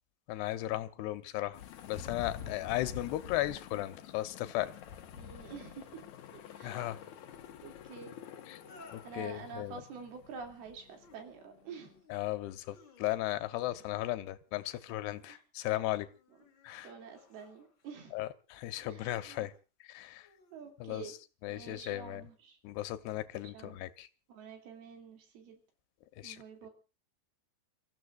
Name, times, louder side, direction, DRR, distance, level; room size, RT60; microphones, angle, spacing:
voice 1, 0.3-1.6 1.9-4.7 6.6-7.0 8.5-8.6 8.9-9.8 12.1-16.1 16.6-16.9 18.1-19.5 19.8-20.3 20.8-22.3 22.6-24.1 26.2-26.4, left 15 dB, 85° left, 3.0 m, -36 dB
sound 1, 1.5-12.0, left 8 dB, 65° left, 2.0 m, -48 dB
sound 2, 4.1-4.7 6.3-7.0 8.5-9.3 10.7-11.2 11.7-12.2 12.6-13.5 14.8-15.4 16.0-18.0 19.1-19.6 20.2-20.7, left 3 dB, 35° left, 2.5 m, -59 dB
voice 2, 5.1-6.0 6.3-6.9 7.6-8.1 9.0-11.9 13.6-13.8 15.3-15.4 16.8-18.1 18.8-19.5 20.5-21.2 21.5-22.6 23.5-23.8 24.3-25.6 26.2-26.7, right 5 dB, 70° right, 4.4 m, -48 dB
30.0 x 14.5 x 2.4 m
omnidirectional pair, 4.6 m